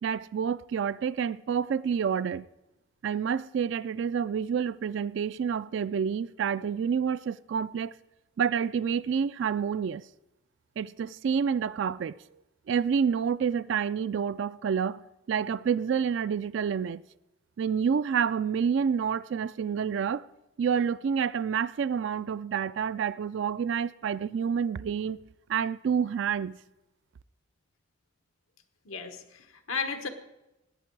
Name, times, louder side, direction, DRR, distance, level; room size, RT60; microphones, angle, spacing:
voice 1, 0.0-2.5 3.0-7.9 8.4-10.0 10.8-12.2 12.7-17.0 17.6-20.2 20.6-25.2 25.5-26.6, right 7 dB, 60° right, 0.3 m, -28 dB
voice 2, 28.8-30.1, left 5 dB, 85° left, 1.2 m, -34 dB
18.5 x 8.4 x 4.6 m
head